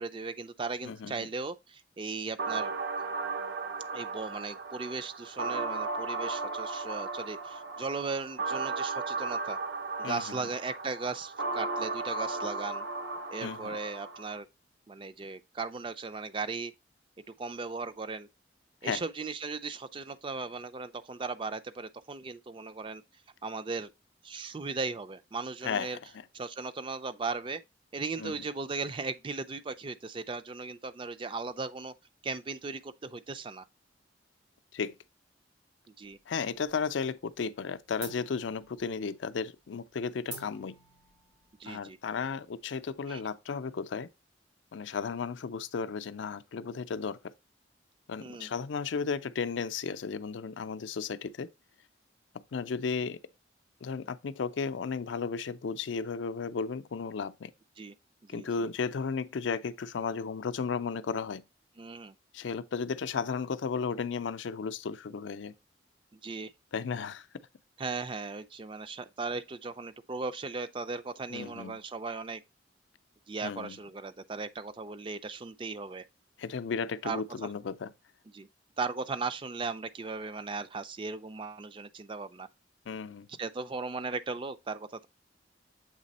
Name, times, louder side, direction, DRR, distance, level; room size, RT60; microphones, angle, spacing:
voice 1, 0.0-2.7 3.9-9.6 10.0-12.9 13.3-14.5 14.9-16.7 17.3-18.3 18.8-23.0 23.4-23.9 24.2-26.0 26.3-27.6 27.9-31.9 32.2-33.6 36.0-36.2 41.6-42.0 43.1-43.2 48.2-48.5 57.8-57.9 58.2-58.5 61.8-62.2 66.1-66.5 67.8-72.4 73.3-76.0 77.0-77.2 78.3-78.5 78.8-82.5 83.4-85.1, right 4 dB, 25° right, 0.3 m, -37 dB
voice 2, 0.8-1.3 10.0-10.4 13.4-13.8 18.8-19.0 25.6-26.0 28.2-28.3 34.7-35.0 36.3-40.8 41.7-44.1 44.7-47.3 48.1-51.5 52.3-53.2 53.8-57.5 58.3-61.4 62.3-65.5 66.7-67.3 71.3-71.8 73.4-73.8 76.4-77.9 82.9-83.3, left 5 dB, 80° left, 0.4 m, -34 dB
sound 1, 2.4-14.4, right 3 dB, 70° right, 0.7 m, -35 dB
sound 2, 36.0-36.9 37.2-37.6 38.0-43.2, right 3 dB, 90° right, 2.7 m, -50 dB
7.4 x 3.3 x 4.1 m
head